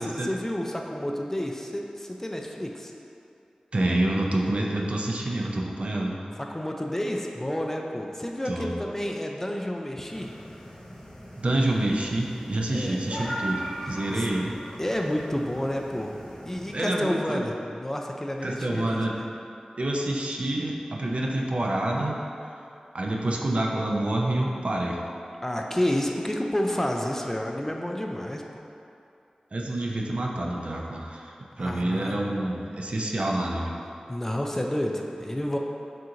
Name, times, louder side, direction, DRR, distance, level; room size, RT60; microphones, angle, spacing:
voice 1, 0.0-2.9 6.4-10.3 12.7-13.0 14.1-14.3 14.8-16.2 16.5-19.3 25.4-28.6 31.6-32.4 34.1-35.6, left 1 dB, 15° left, 1 dB, 0.3 m, -30 dB
voice 2, 3.7-6.2 8.5-8.7 11.4-14.5 16.7-17.5 18.4-19.2 19.8-22.2 22.9-25.0 29.5-33.8, right 1 dB, 55° right, -1 dB, 0.4 m, -27 dB
sound 1, 10.1-16.8, right 1 dB, 35° left, 0.9 m, -39 dB
4.3 x 2.5 x 3.7 m, 2.6 s
wide cardioid pair, 65°, 2 cm